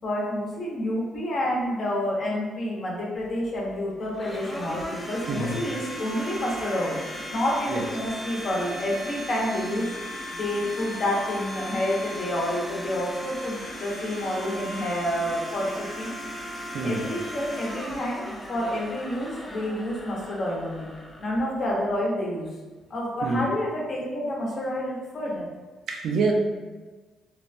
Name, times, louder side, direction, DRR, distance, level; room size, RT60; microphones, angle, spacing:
voice 1, 0.0-9.9 10.3-16.1 16.8-20.9 21.2-22.5 22.9-25.5, left 1 dB, 55° left, -3 dB, 0.7 m, -29 dB
Domestic sounds home sounds, 3.2-22.0, equal, 15° left, 0.5 m, -37 dB
voice 2, 5.3-5.6 7.7-7.8 16.7-17.1 23.2-23.4 25.9-26.3, right 3 dB, 70° right, 2 dB, 0.4 m, -26 dB
3.0 x 2.1 x 2.5 m, 1.3 s
cardioid pair, 90°, 0 cm